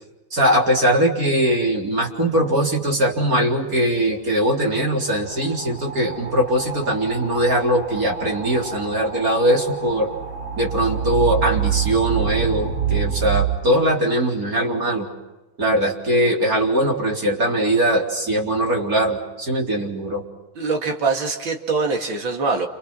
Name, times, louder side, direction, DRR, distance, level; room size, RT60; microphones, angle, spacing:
voice 1, 0.3-10.1 10.6-15.1 15.6-20.2, right 1 dB, 45° right, 0 dB, 4.3 m, -21 dB
sound 1, 1.7-1.8 2.1-13.4, right 8 dB, 90° right, 6.9 m, -28 dB
voice 2, 20.6-22.7, right 4 dB, 70° right, 4 dB, 2.9 m, -23 dB
30.0 x 27.5 x 6.2 m, 1.1 s
omnidirectional pair, 2.2 m